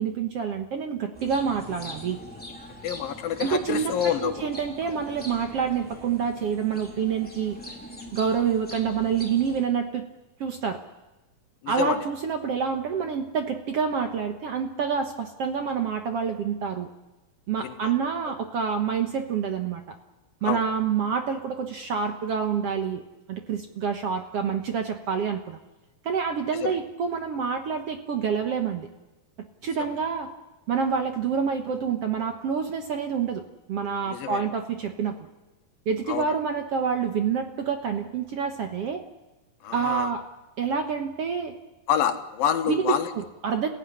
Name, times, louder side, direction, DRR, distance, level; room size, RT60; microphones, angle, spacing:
voice 1, 0.0-2.2 3.4-3.9 4.2-7.6 8.1-10.0 10.4-10.8 11.7-16.9 17.5-19.8 20.4-23.0 23.3-25.6 26.0-28.9 29.6-30.3 30.7-33.4 33.7-35.2 35.9-39.0 39.7-40.2 40.6-41.5 42.7-43.7, right 6 dB, 60° right, 5 dB, 1.8 m, -27 dB
sound 1, 1.1-9.6, left 1 dB, 5° left, 3.4 m, -42 dB
voice 2, 2.8-4.5 4.9-5.0 11.6-12.0 17.6-17.9 20.4-20.6 26.6-26.7 29.8-29.9 34.0-34.5 36.1-36.3 39.6-40.1 41.9-43.1, left 9 dB, 80° left, 7 dB, 3.1 m, -27 dB
28.5 x 16.0 x 9.9 m, 1.1 s
omnidirectional pair, 4.0 m